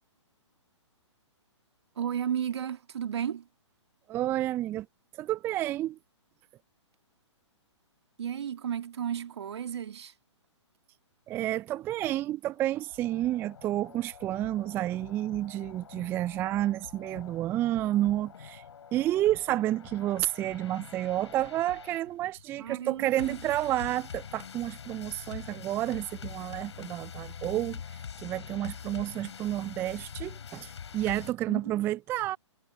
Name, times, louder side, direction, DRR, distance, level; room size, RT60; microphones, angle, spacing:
voice 1, 2.0-3.5 8.2-10.1 22.6-23.4 31.5-31.9, right 9 dB, 60° right, 1.8 m, -33 dB
voice 2, 4.1-4.9 5.2-6.0 11.3-18.6 18.9-27.8 28.2-32.4, right 14 dB, 15° right, 0.4 m, -30 dB
sound 1, 12.5-31.3, left 7 dB, 65° left, 6.5 m, -45 dB
figure-of-eight pair, 125°, 16 cm